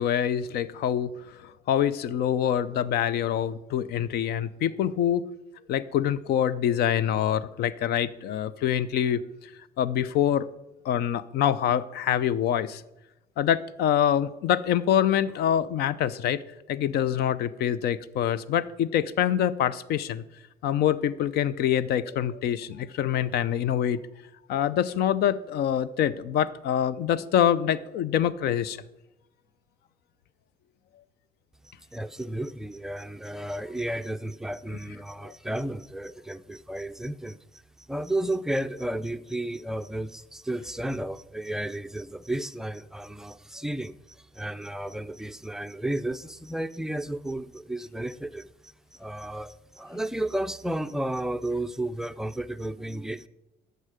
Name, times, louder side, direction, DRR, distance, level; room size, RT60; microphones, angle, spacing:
voice 1, 0.0-5.2 5.7-9.2 9.8-10.5 10.8-12.8 13.4-16.4 16.7-20.2 20.6-24.0 24.5-28.8 35.2-35.3, left 10 dB, 70° left, 17 dB, 0.5 m, -25 dB
voice 2, 31.9-53.3, right 1 dB, 5° right, 10 dB, 0.4 m, -33 dB
11.0 x 6.7 x 5.0 m, 0.93 s
cardioid pair, 110°, 17 cm